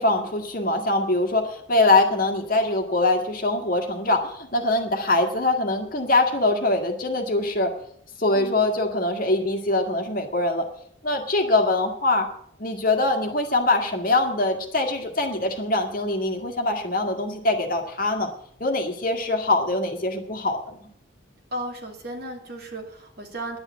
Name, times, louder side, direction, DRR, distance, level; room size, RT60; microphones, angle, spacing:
voice 1, 0.0-7.7 8.2-10.7 11.0-12.3 12.6-18.3 18.6-20.9, left 2 dB, 45° left, 4 dB, 1.8 m, -23 dB
voice 2, 8.3-8.7 21.5-23.6, right 1 dB, 50° right, 2 dB, 2.6 m, -35 dB
11.0 x 8.8 x 8.2 m, 0.66 s
head